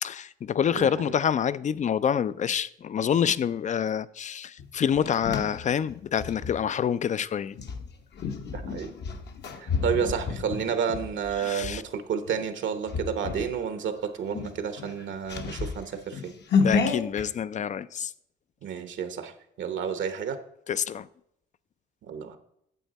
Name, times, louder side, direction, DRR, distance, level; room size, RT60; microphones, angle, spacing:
voice 1, 0.0-7.6 11.4-11.8 16.6-18.1 20.7-21.1, left 8 dB, 40° left, 0.4 m, -27 dB
voice 2, 0.7-1.1 8.5-8.9 9.6-16.3 18.6-19.3 19.6-20.4 22.1-22.4, right 7 dB, 70° right, 1.0 m, -30 dB
sound 1, 4.6-6.6 7.5-11.8 12.3-12.5 12.9-13.5 13.9-14.0 14.3-17.2, left 5 dB, 60° left, 1.0 m, -30 dB
9.3 x 7.3 x 4.1 m
cardioid pair, 90°, 20 cm